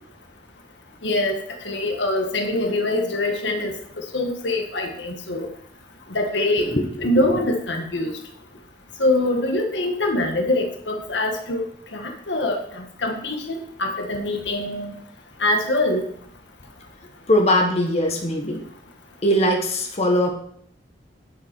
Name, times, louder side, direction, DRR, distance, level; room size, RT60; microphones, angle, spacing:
voice 1, 1.0-1.4 1.6-5.5 6.1-6.7 7.0-8.2 9.0-11.6 11.9-14.9 15.4-16.1, left 2 dB, 85° left, 3 dB, 1.6 m, -24 dB
voice 2, 17.3-18.6 19.2-20.3, equal, 40° left, 2 dB, 1.4 m, -20 dB
10.0 x 7.1 x 4.5 m, 0.65 s
head